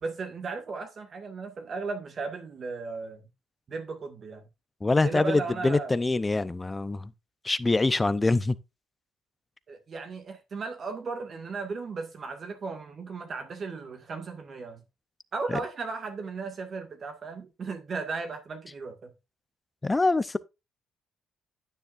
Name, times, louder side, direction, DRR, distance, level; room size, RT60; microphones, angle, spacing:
voice 1, 0.0-3.2 3.7-4.4 5.0-6.0 9.7-14.8 15.3-19.1, right 4 dB, 45° right, 1.9 m, -36 dB
voice 2, 4.8-7.1 7.4-8.6 15.5-15.6 19.8-20.4, left 3 dB, 20° left, 0.6 m, -24 dB
9.9 x 9.3 x 2.5 m
cardioid pair, 90°, 0 cm